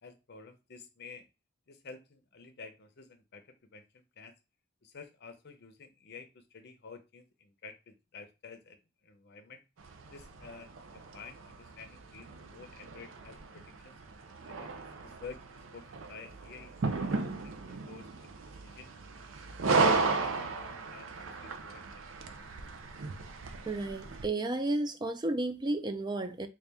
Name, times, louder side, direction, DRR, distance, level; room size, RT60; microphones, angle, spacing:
voice 1, 0.0-1.3 1.7-3.4 3.7-3.8 4.2-4.3 4.8-8.8 9.0-9.6 10.1-14.0 14.4-15.4 15.7-18.4 18.6-18.9 19.6-21.8, left 4 dB, 55° left, 0.7 m, -51 dB
sound 1, 9.8-24.3, right 4 dB, 75° right, 0.5 m, -35 dB
voice 2, 23.7-26.5, right 2 dB, 20° right, 0.4 m, -32 dB
4.1 x 2.4 x 3.4 m
head